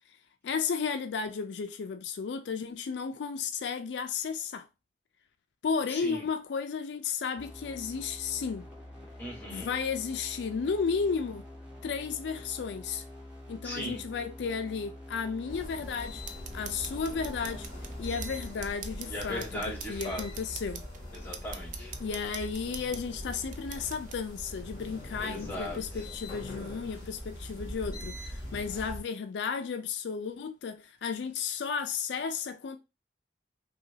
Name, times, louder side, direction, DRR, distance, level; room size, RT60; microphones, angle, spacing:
voice 1, 0.4-4.7 5.6-8.7 9.5-11.4 11.8-13.0 13.5-16.2 16.5-17.7 18.0-19.6 19.9-20.8 22.0-32.8, left 5 dB, 75° left, 0.4 m, -33 dB
voice 2, 5.9-6.2 9.2-9.7 13.6-14.0 19.1-20.2 21.1-21.9 25.2-25.8, equal, 10° left, 1.6 m, -38 dB
sound 1, 7.4-19.3, left 1 dB, 10° right, 1.4 m, -47 dB
sound 2, 15.5-29.0, left 1 dB, 25° left, 2.1 m, -42 dB
sound 3, 16.2-24.2, right 6 dB, 45° right, 0.5 m, -45 dB
5.7 x 2.3 x 2.7 m
head